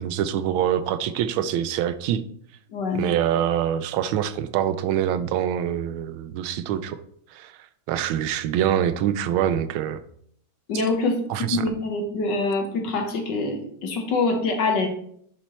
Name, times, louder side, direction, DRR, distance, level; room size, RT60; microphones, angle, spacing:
voice 1, 0.0-2.2 2.9-7.0 7.3-7.5 7.9-10.0 11.3-11.7, right 10 dB, 90° right, 11 dB, 1.4 m, -25 dB
voice 2, 2.7-3.0 10.7-14.9, left 3 dB, 65° left, 4 dB, 1.6 m, -25 dB
9.9 x 4.3 x 3.0 m, 0.67 s
omnidirectional pair, 2.2 m